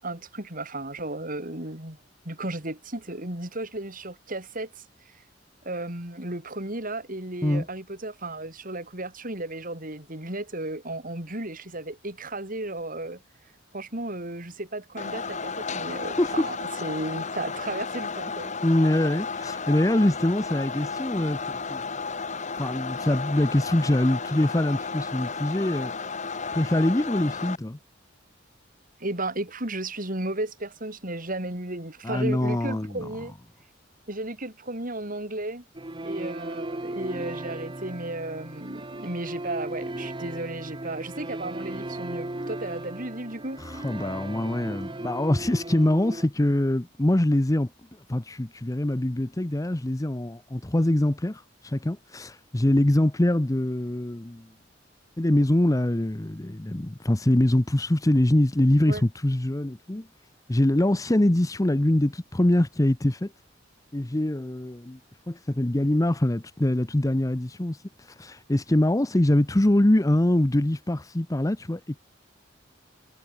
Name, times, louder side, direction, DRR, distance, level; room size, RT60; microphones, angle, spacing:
voice 1, 0.0-2.0 2.2-4.8 5.6-13.2 13.7-18.5 29.0-33.4 34.1-35.6 36.0-43.6 58.9-59.0, right 2 dB, 45° right, 6.6 m, -34 dB
sound 1, 15.0-27.6, left 4 dB, 40° left, 2.3 m, -33 dB
voice 2, 16.2-16.5 18.6-21.8 22.6-25.9 26.5-27.8 32.0-33.1 43.6-47.7 48.1-54.5 55.2-60.1 60.5-63.3 63.9-65.0 65.3-72.0, left 1 dB, 20° left, 0.8 m, -24 dB
sound 2, 35.7-46.3, right 1 dB, 25° right, 1.4 m, -36 dB
head